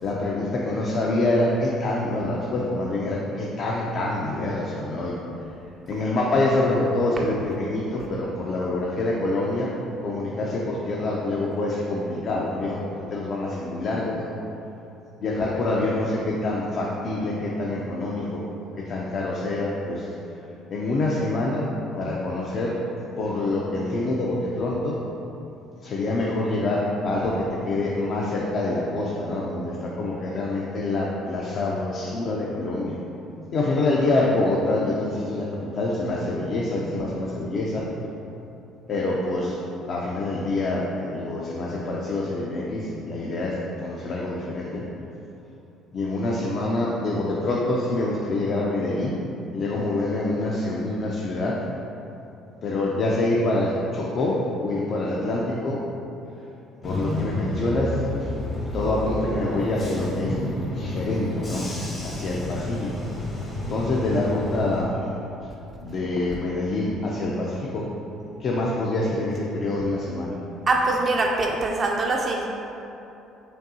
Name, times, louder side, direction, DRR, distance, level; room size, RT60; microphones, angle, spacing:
voice 1, 0.0-5.1 5.9-9.7 10.0-12.8 13.1-14.2 15.2-18.4 18.8-20.1 20.7-21.6 21.9-22.7 23.2-25.0 25.8-33.0 33.5-35.5 35.7-37.9 38.9-39.6 39.9-44.8 45.9-49.2 49.5-51.6 52.6-55.8 56.8-58.3 58.7-60.5 60.7-61.7 62.0-62.9 63.7-65.0 65.8-67.9 68.4-70.3, left 2 dB, 50° left, -3 dB, 0.4 m, -26 dB
Bus / Engine, 56.8-64.8, left 1 dB, 30° left, 0.8 m, -30 dB
voice 2, 70.7-72.5, right 2 dB, 35° right, -1 dB, 0.3 m, -23 dB
5.3 x 2.7 x 2.7 m, 2.9 s
cardioid pair, 115°, 0 cm